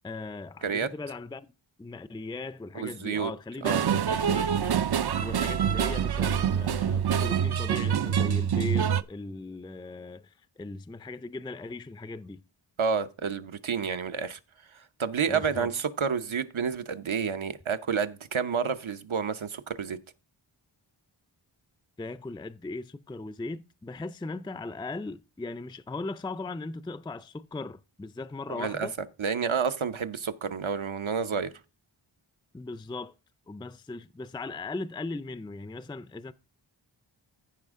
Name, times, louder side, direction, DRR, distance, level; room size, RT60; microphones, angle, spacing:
voice 1, 0.0-1.5 1.8-4.5 5.2-12.4 15.3-15.7 22.0-28.9 32.5-33.1 33.5-36.3, left 3 dB, 10° left, 0.4 m, -38 dB
voice 2, 2.7-3.3 3.6-3.8 12.8-14.4 14.7-20.0 28.5-28.9 29.2-31.5, right 6 dB, 70° right, 0.9 m, -29 dB
sound 1, 3.6-9.0, right 8 dB, 50° right, 0.5 m, -26 dB
15.0 x 5.0 x 3.6 m
wide cardioid pair, 50°, 49 cm